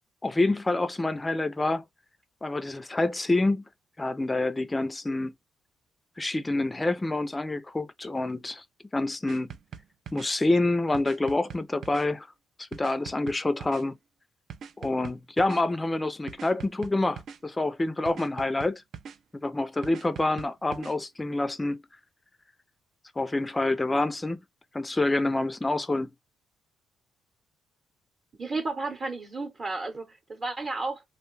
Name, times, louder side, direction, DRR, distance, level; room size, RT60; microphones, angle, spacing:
voice 1, 0.2-1.8 2.4-3.6 4.0-5.3 6.2-8.6 8.9-9.5 10.1-12.3 12.6-14.0 14.8-18.8 19.3-21.8 23.2-24.4 24.7-26.1, left 2 dB, 15° left, 0.4 m, -27 dB
sound 1, 9.3-10.3 10.9-12.1 12.7-13.8 14.5-15.6 16.3-17.4 18.1-19.2 19.8-20.9, right 7 dB, 65° right, 0.4 m, -42 dB
voice 2, 28.4-31.0, right 3 dB, 40° right, 0.8 m, -32 dB
2.5 x 2.2 x 3.0 m
cardioid pair, 90°, 0 cm